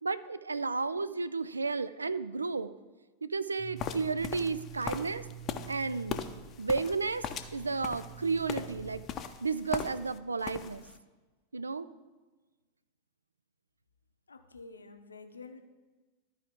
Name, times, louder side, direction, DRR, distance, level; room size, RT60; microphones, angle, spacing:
voice 1, 0.0-2.7 3.2-5.2 5.7-6.2 6.6-7.2 7.5-9.0 9.4-10.8 11.5-11.9, right 4 dB, 75° right, 15 dB, 0.3 m, -32 dB
sound 1, 3.6-9.0, right 10 dB, 35° right, 0.9 m, -48 dB
sound 2, 3.8-10.2 10.4-10.9, left 8 dB, 30° left, 0.6 m, -39 dB
voice 2, 14.3-15.6, left 4 dB, 75° left, 8 dB, 0.6 m, -49 dB
13.0 x 4.8 x 3.5 m, 1.3 s
figure-of-eight pair, 90°, 0 cm